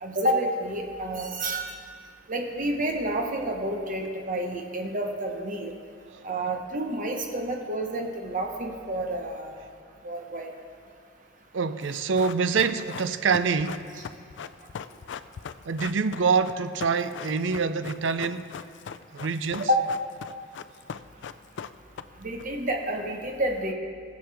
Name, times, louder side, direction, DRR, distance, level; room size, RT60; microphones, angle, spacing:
voice 1, 0.0-1.7 2.3-5.7 6.2-9.6 10.0-10.5 19.6-19.8 22.2-23.7, right 1 dB, 45° right, 2 dB, 1.1 m, -29 dB
voice 2, 11.5-13.8 15.7-18.5 19.1-19.7, right 5 dB, 85° right, 12 dB, 0.5 m, -26 dB
Run, 11.8-22.4 22.7-22.8, left 7 dB, 70° left, 0.4 m, -40 dB
21.0 x 7.1 x 3.4 m, 2.2 s
head